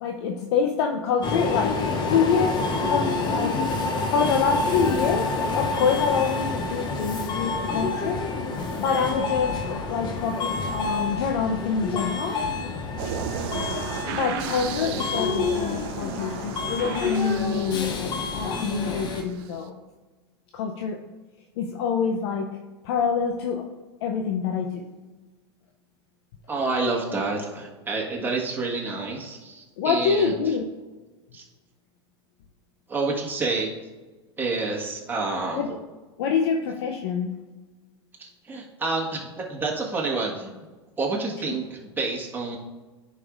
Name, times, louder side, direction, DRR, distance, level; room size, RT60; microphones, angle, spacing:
voice 1, 0.0-3.6 4.1-8.2 8.8-12.4 14.1-19.8 20.5-21.0 21.6-22.6 22.8-23.7 24.0-24.9 29.8-30.7 35.5-35.7 36.2-37.4, left 6 dB, 65° left, 3 dB, 0.7 m, -26 dB
Subway metro underground, 1.2-19.2, left 3 dB, 30° left, 0.9 m, -28 dB
sound 1, 13.0-19.5, right 7 dB, 55° right, 0.6 m, -34 dB
voice 2, 26.5-30.6 31.3-31.5 32.9-33.7 34.4-35.8 38.2-40.7 41.0-42.6, right 3 dB, 15° right, -2 dB, 1.6 m, -29 dB
10.5 x 5.3 x 2.5 m, 1.3 s
hypercardioid pair, 110°, 15 cm